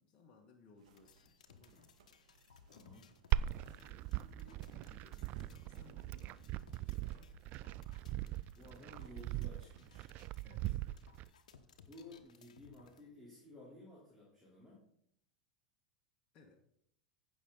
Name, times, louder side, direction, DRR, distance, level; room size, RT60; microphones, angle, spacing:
voice 1, 0.0-1.9 3.6-7.3 10.4-10.8 16.3-16.6, left 3 dB, 40° left, 1 dB, 1.4 m, -64 dB
sound 1, 0.8-10.6, right 5 dB, 70° right, 1.6 m, -66 dB
sound 2, 1.0-13.0, left 6 dB, 75° left, 1.1 m, -63 dB
voice 2, 2.7-3.1 8.2-10.1 11.9-14.8, left 1 dB, ahead, -8 dB, 3.8 m, -56 dB
Glass, 3.3-11.3, right 14 dB, 45° right, 0.4 m, -40 dB
15.0 x 6.3 x 4.0 m, 0.71 s
hypercardioid pair, 90°, 4 cm